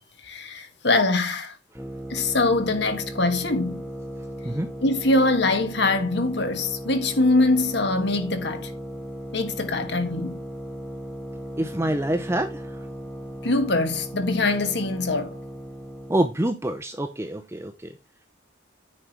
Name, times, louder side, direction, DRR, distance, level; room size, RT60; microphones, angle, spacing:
voice 1, 0.2-1.5 2.1-3.8 4.8-8.7 9.3-10.4 13.4-15.4, left 2 dB, 60° left, 1.6 m, -23 dB
sound 1, 1.8-16.3, equal, 5° left, 1.3 m, -37 dB
voice 2, 11.6-12.8 16.1-18.0, right 1 dB, 15° right, 0.7 m, -26 dB
9.7 x 5.3 x 4.5 m
head